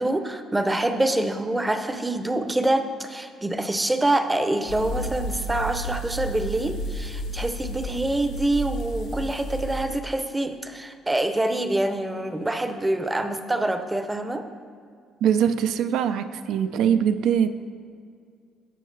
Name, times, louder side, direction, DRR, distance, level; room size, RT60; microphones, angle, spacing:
voice 1, 0.0-14.4, right 1 dB, 15° right, 8 dB, 0.6 m, -26 dB
sound 1, 4.7-9.8, right 1 dB, 90° left, 2.2 m, -32 dB
voice 2, 15.2-17.5, right 8 dB, 75° right, 10 dB, 0.5 m, -22 dB
15.5 x 5.6 x 3.3 m, 2.2 s
cardioid pair, 105°, 0 cm